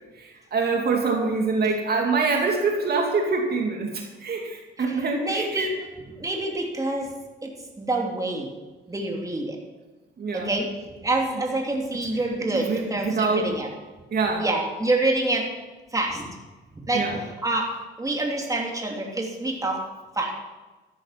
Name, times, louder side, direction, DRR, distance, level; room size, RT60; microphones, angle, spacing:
voice 1, 0.2-5.7 10.2-10.5 12.5-13.6 14.1-14.5 16.9-17.2, right 4 dB, 55° right, 1 dB, 2.5 m, -25 dB
voice 2, 4.9-5.7 6.2-7.1 7.4-7.5 7.8-8.5 8.9-9.6 10.3-10.7 11.0-13.7 14.4-15.5 15.9-16.3 16.7-17.7 18.0-19.8 20.1-20.3, right 2 dB, 15° right, -1 dB, 3.0 m, -26 dB
13.5 x 10.5 x 5.9 m, 1.2 s
cardioid pair, 90°, 20 cm